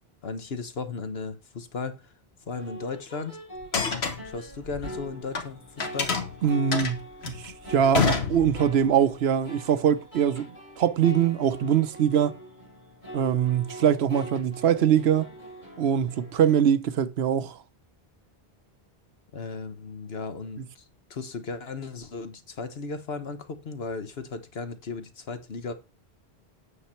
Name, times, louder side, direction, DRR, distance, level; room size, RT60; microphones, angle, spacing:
voice 1, 0.2-2.1 2.5-3.4 4.2-6.1 19.3-20.8 21.1-25.7, left 4 dB, 75° left, 1.4 m, -36 dB
sound 1, 2.5-16.5, right 1 dB, 50° left, 5.4 m, -44 dB
sound 2, 3.6-5.5 5.8-8.9, left 5 dB, 90° left, 1.6 m, -28 dB
voice 2, 6.4-12.3 13.1-15.3 15.8-17.6, right 8 dB, 80° right, 1.0 m, -23 dB
8.7 x 6.8 x 4.3 m
omnidirectional pair, 1.0 m